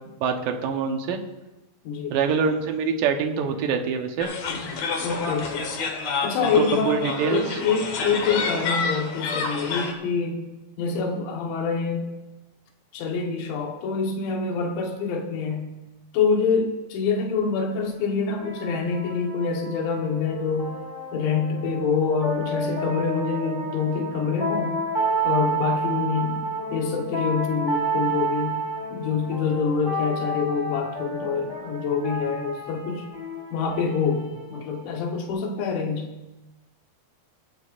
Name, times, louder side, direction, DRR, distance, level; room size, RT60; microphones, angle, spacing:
voice 1, 0.2-1.2 2.1-4.3 6.4-7.6, right 6 dB, 70° right, 4 dB, 2.1 m, -25 dB
voice 2, 1.9-2.2 4.5-4.6 5.0-5.7 6.2-7.0 7.3-10.4 10.8-12.1 12.9-15.7 16.1-20.8 21.1-24.8 25.2-28.6 28.9-33.1 33.5-36.1, left 5 dB, 90° left, 1 dB, 3.6 m, -26 dB
sound 1, 4.2-9.9, left 4 dB, 70° left, 1.6 m, -29 dB
sound 2, 17.9-35.3, right 2 dB, 15° left, 3.1 m, -31 dB
23.0 x 11.0 x 2.5 m, 1.1 s
omnidirectional pair, 5.1 m